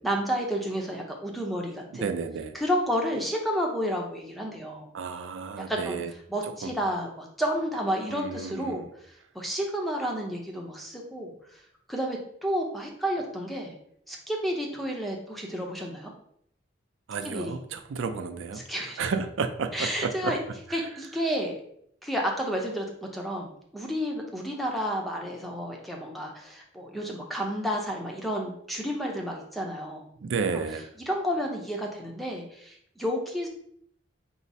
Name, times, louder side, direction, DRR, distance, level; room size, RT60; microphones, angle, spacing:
voice 1, 0.0-2.1 2.5-4.9 5.6-8.8 9.3-11.3 11.9-13.7 14.1-16.1 17.2-17.6 18.7-19.0 19.7-20.4 20.7-21.5 22.0-22.9 23.1-30.1 30.5-30.6 31.0-33.5, equal, ahead, 0 dB, 0.6 m, -31 dB
voice 2, 2.0-2.5 4.9-6.1 6.6-6.7 8.1-8.8 17.1-18.6 19.0-20.3 30.2-30.8, right 5 dB, 90° right, 8 dB, 0.4 m, -31 dB
4.7 x 2.0 x 4.0 m, 0.67 s
head